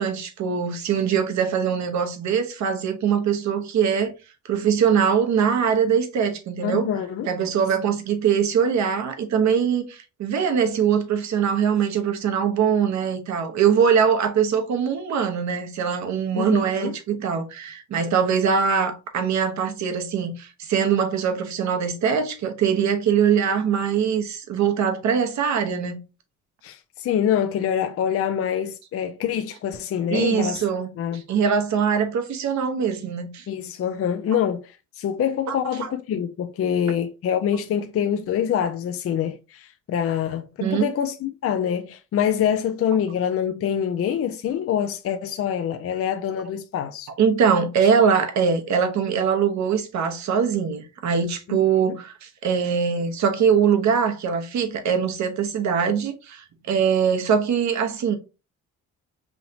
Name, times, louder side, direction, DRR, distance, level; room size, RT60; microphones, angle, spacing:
voice 1, 0.0-4.1 4.5-6.9 7.2-26.0 30.1-33.4 35.5-35.6 40.6-40.9 47.2-58.2, right 7 dB, 65° right, 1.0 m, -22 dB
voice 2, 6.6-7.3 16.3-17.0 26.6-30.6 31.0-31.2 33.5-47.1 51.5-51.6 51.8-51.9, left 9 dB, 50° left, 0.5 m, -25 dB
5.6 x 2.8 x 2.7 m
cardioid pair, 90°, 30 cm